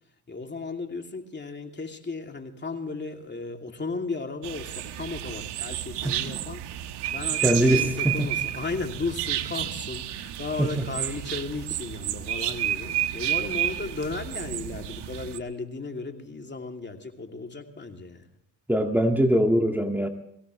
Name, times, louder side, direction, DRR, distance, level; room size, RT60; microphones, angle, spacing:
voice 1, 0.3-18.3, left 3 dB, 25° left, 4 dB, 2.7 m, -35 dB
sound 1, 4.4-15.4, right 12 dB, 80° right, 1.4 m, -31 dB
voice 2, 7.4-8.3 10.6-10.7 18.7-20.1, equal, 5° right, 3 dB, 2.0 m, -22 dB
23.5 x 17.0 x 3.2 m, 0.77 s
cardioid pair, 80°, 40 cm